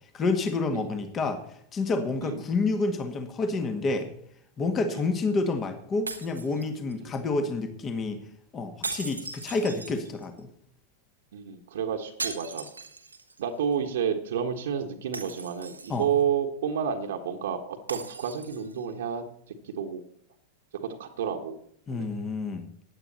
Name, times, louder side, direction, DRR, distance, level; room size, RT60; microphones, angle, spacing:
voice 1, 0.1-1.4 1.7-4.1 4.6-8.2 8.5-10.5 15.9-16.1 21.9-22.7, left 3 dB, 25° left, 8 dB, 1.9 m, -29 dB
sound 1, 6.1-7.1 8.8-10.4 12.2-13.4 13.7-13.8 15.1-16.2 17.9-18.8, right 3 dB, 80° right, 1.2 m, -38 dB
voice 2, 11.3-12.7 13.4-20.0 20.8-21.6 21.9-22.1, right 7 dB, 60° right, 4 dB, 1.5 m, -30 dB
15.5 x 10.5 x 4.2 m, 0.67 s
figure-of-eight pair, 90°, 0 cm